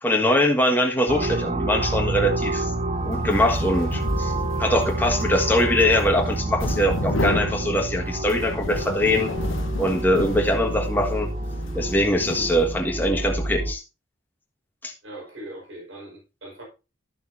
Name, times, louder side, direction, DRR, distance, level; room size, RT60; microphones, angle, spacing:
voice 1, 0.0-2.7 3.0-4.3 4.6-9.3 9.8-11.3 11.7-13.8 14.8-14.9, left 1 dB, 10° left, 1.6 m, -22 dB
sound 1, 1.1-13.7, right 2 dB, 35° right, 0.7 m, -28 dB
Metal Sheet Flex, 3.0-13.0, left 2 dB, 80° left, 1.1 m, -32 dB
voice 2, 15.0-16.6, right 1 dB, 80° right, 5.0 m, -40 dB
13.0 x 7.0 x 2.7 m
head